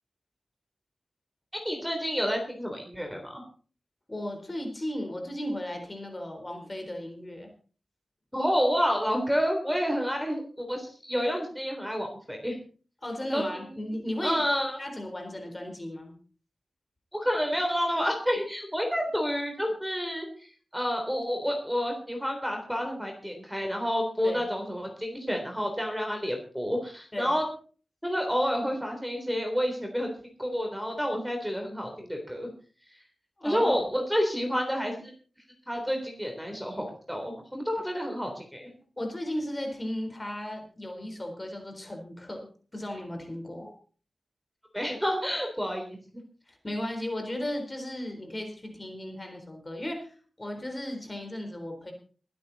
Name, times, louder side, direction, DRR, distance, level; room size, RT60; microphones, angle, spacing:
voice 1, 1.6-3.4 8.3-12.6 13.3-13.7 14.2-14.8 17.1-27.4 28.0-30.1 30.4-32.5 33.4-35.1 35.7-38.7 43.6-43.7 44.7-46.0, equal, ahead, 3 dB, 3.6 m, -29 dB
voice 2, 4.1-7.5 13.0-14.4 14.8-16.1 24.2-24.4 27.1-27.3 33.4-33.8 39.0-42.5 42.7-43.7 46.5-51.9, left 1 dB, 25° left, 3 dB, 4.0 m, -35 dB
22.0 x 9.3 x 4.2 m, 0.40 s
wide cardioid pair, 110°, 0 cm